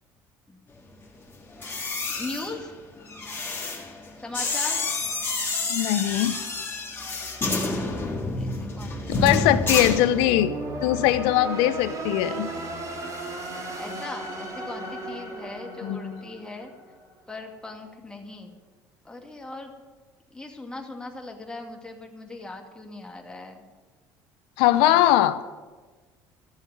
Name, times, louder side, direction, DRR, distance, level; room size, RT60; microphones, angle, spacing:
sound 1, 1.5-10.6 10.9-11.2, left 3 dB, 25° left, 3.2 m, -29 dB
voice 1, 2.2-2.7 4.2-4.8 8.4-10.1 13.8-16.7 17.3-18.6 19.0-19.7 20.3-23.6 24.6-25.0, left 2 dB, 10° left, 1 dB, 2.4 m, -39 dB
voice 2, 5.7-6.4 9.1-10.5 10.8-12.5 15.8-16.2 24.6-25.4, left 13 dB, 85° left, 12 dB, 0.8 m, -21 dB
sound 2, 6.1-17.1, right 2 dB, 45° right, 3.5 m, -37 dB
14.0 x 7.4 x 9.4 m, 1.3 s
cardioid pair, 110°, 8 cm